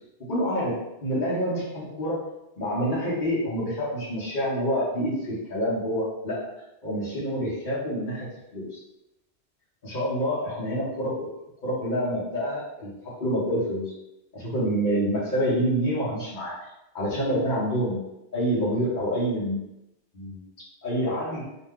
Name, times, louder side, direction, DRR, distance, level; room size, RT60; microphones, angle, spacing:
voice 1, 0.3-2.2 2.6-6.5 6.8-8.8 9.8-11.3 11.6-13.9 14.3-16.6 16.9-18.0 18.3-19.6 20.1-20.4 20.8-21.4, equal, 45° left, -9 dB, 1.0 m, -27 dB
2.7 x 2.2 x 3.5 m, 0.87 s
omnidirectional pair, 1.2 m